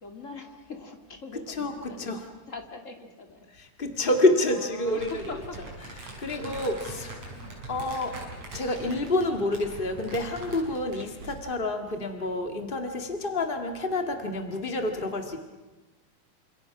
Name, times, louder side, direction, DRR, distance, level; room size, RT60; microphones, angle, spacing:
voice 1, 0.0-3.5 4.0-5.6 6.3-7.7, left 3 dB, 25° left, 4 dB, 1.8 m, -43 dB
voice 2, 1.3-2.2 3.5-5.1 6.2-7.1 7.7-8.2 8.5-15.4, left 2 dB, 55° left, 5 dB, 0.5 m, -28 dB
Crumpling crinkling, 4.8-11.5, right 2 dB, 40° right, 7.0 m, -42 dB
28.5 x 27.0 x 6.0 m, 1.1 s
omnidirectional pair, 4.7 m